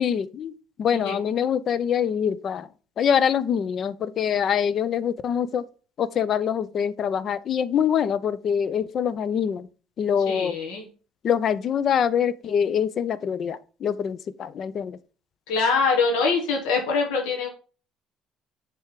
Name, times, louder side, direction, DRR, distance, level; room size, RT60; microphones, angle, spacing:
voice 1, 0.0-2.7 3.0-5.7 6.0-9.7 10.0-10.6 11.2-15.0, left 8 dB, 50° left, 0.5 m, -24 dB
voice 2, 10.3-10.8 15.5-17.5, left 4 dB, 85° left, 1.5 m, -24 dB
7.3 x 3.5 x 4.8 m
supercardioid pair, 95°, 0 cm